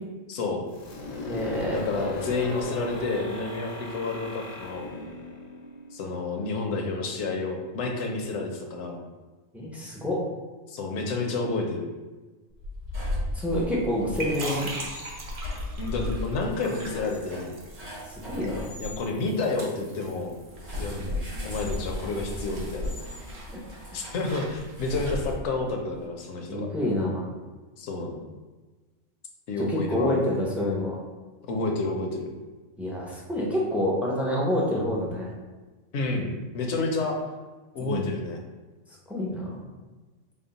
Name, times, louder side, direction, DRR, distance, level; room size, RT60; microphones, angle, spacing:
voice 1, 0.3-0.6 1.7-4.9 5.9-9.0 10.7-11.8 15.8-17.5 18.8-20.4 20.8-22.9 23.9-26.7 27.8-28.2 29.5-30.2 31.5-32.3 35.9-37.2 37.7-38.4, left 3 dB, 65° left, 2 dB, 0.9 m, -30 dB
sound 1, 0.7-6.4, left 2 dB, 85° left, 1.3 m, -37 dB
voice 2, 1.3-1.8 9.5-10.2 13.3-14.7 18.1-18.7 26.5-27.3 29.7-31.0 32.8-35.3 37.8-38.1 39.1-39.6, left 1 dB, ahead, -4 dB, 0.3 m, -27 dB
sound 2, 12.5-19.0 20.5-25.8, left 1 dB, 80° right, 1.7 m, -36 dB
sound 3, 13.8-25.3, right 2 dB, 50° right, 0.8 m, -43 dB
4.3 x 2.0 x 3.9 m, 1.3 s
omnidirectional pair, 1.3 m